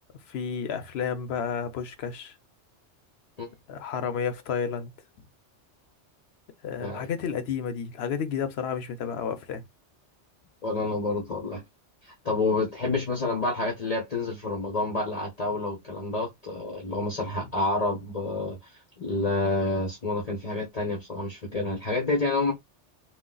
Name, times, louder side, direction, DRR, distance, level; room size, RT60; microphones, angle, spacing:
voice 1, 0.3-2.4 3.7-4.9 6.6-9.6, left 7 dB, 65° left, 0.9 m, -31 dB
voice 2, 10.6-11.6 12.0-22.5, left 2 dB, 35° left, 0.9 m, -29 dB
3.7 x 2.4 x 2.3 m
omnidirectional pair, 1.2 m